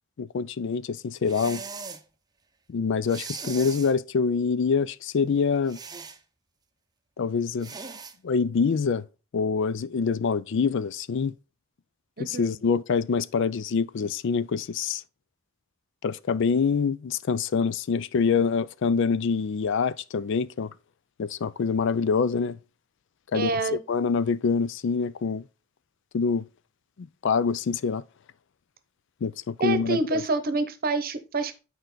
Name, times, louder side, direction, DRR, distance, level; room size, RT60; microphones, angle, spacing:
voice 1, 0.2-1.6 2.7-5.8 7.2-7.8 8.2-9.0 9.3-11.3 12.2-15.0 16.0-20.7 21.2-22.6 23.3-23.5 23.9-25.4 26.1-26.5 27.0-28.0 29.2-30.2, left 5 dB, 60° left, 0.4 m, -25 dB
sound 1, 1.3-2.0 3.1-3.9 5.7-6.2 7.6-8.1, right 5 dB, 20° right, 0.7 m, -39 dB
voice 2, 12.2-12.5 23.3-23.8 29.6-31.6, right 3 dB, 45° right, 0.9 m, -27 dB
9.0 x 4.7 x 3.8 m
head